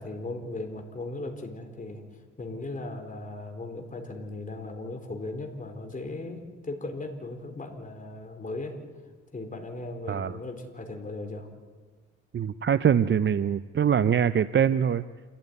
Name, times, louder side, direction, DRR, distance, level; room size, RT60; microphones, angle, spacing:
voice 1, 0.0-2.0 2.4-8.8 9.3-11.5, left 2 dB, 25° left, 3 dB, 4.3 m, -37 dB
voice 2, 10.1-10.4 12.3-15.0, right 8 dB, 40° right, 13 dB, 0.7 m, -23 dB
28.5 x 14.5 x 9.6 m, 1.4 s
cardioid pair, 90°, 30 cm